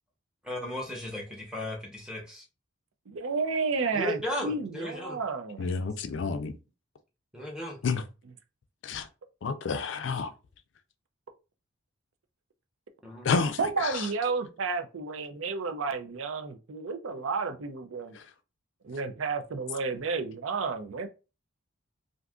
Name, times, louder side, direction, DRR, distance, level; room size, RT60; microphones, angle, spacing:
voice 1, 0.4-2.4 3.9-5.2 7.3-7.8 13.0-13.5, left 1 dB, 5° right, 0.8 m, -35 dB
voice 2, 3.1-5.6 13.6-18.2 18.8-21.1, right 4 dB, 75° right, 0.5 m, -31 dB
voice 3, 5.6-6.5 7.8-8.0 8.8-9.1 9.4-10.3 13.2-14.1 18.2-18.3, left 4 dB, 60° left, 0.4 m, -29 dB
2.6 x 2.4 x 3.5 m
head